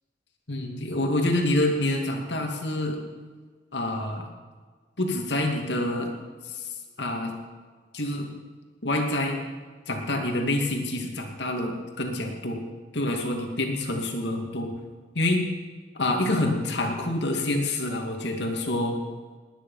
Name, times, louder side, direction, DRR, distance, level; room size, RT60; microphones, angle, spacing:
voice 1, 0.5-3.0 3.7-4.3 5.0-6.1 6.5-6.7 7.0-7.4 7.9-8.3 8.8-9.4 9.9-12.6 12.9-14.7 15.1-15.4 15.9-19.0, left 1 dB, 70° left, 2 dB, 2.4 m, -27 dB
20.0 x 10.0 x 5.7 m, 1.5 s
head